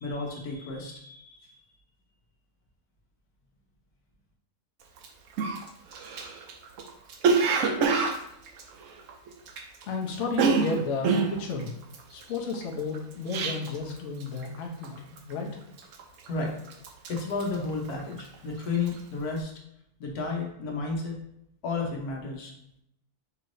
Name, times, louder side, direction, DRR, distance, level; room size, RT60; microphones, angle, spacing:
voice 1, 0.0-1.5 16.3-16.5 17.1-19.5 20.0-21.2 21.6-22.5, left 4 dB, 80° left, 0 dB, 1.4 m, -32 dB
Cough, 5.0-5.1 5.4-9.8 10.1-13.9 14.2-14.6 14.8-15.3 15.8-16.4 16.7-18.4 18.7-19.0, right 5 dB, 65° right, 0.9 m, -27 dB
voice 2, 9.9-11.7 12.1-15.5, left 4 dB, 60° left, 0 dB, 0.9 m, -32 dB
5.6 x 3.2 x 2.6 m, 0.76 s
omnidirectional pair, 1.6 m